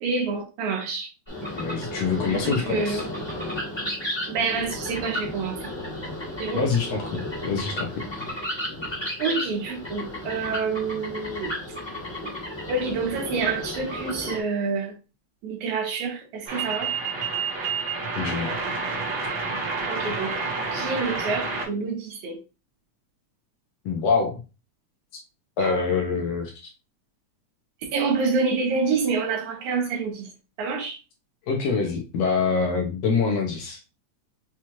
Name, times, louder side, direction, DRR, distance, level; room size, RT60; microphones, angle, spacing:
voice 1, 0.0-1.1 2.2-3.1 4.3-5.7 6.4-6.7 9.2-11.5 12.7-15.0 15.4-16.9 19.6-22.4 25.6-25.7 27.8-30.3 30.6-31.0, right 4 dB, 75° right, 2.4 m, -28 dB
sound 1, 1.3-14.4, left 1 dB, 40° left, 0.4 m, -33 dB
voice 2, 1.5-3.0 6.5-8.0 18.1-18.6 23.8-24.4 25.1-25.2 25.6-26.7 31.5-33.8, left 5 dB, 75° left, 1.6 m, -25 dB
sound 2, 16.5-21.7, right 4 dB, 55° right, 2.0 m, -29 dB
6.0 x 2.4 x 2.8 m
omnidirectional pair, 3.4 m